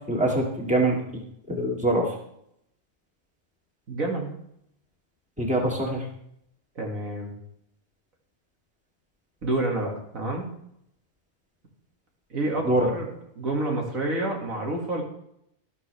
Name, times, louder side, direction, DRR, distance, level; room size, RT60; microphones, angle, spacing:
voice 1, 0.1-1.0 1.5-2.1 5.4-6.0 12.6-12.9, right 1 dB, 5° right, -1 dB, 2.1 m, -23 dB
voice 2, 3.9-4.3 6.8-7.3 9.4-10.5 12.3-13.1 13.3-15.0, right 2 dB, 75° right, 0 dB, 2.6 m, -28 dB
12.5 x 12.5 x 3.4 m, 0.74 s
omnidirectional pair, 1.4 m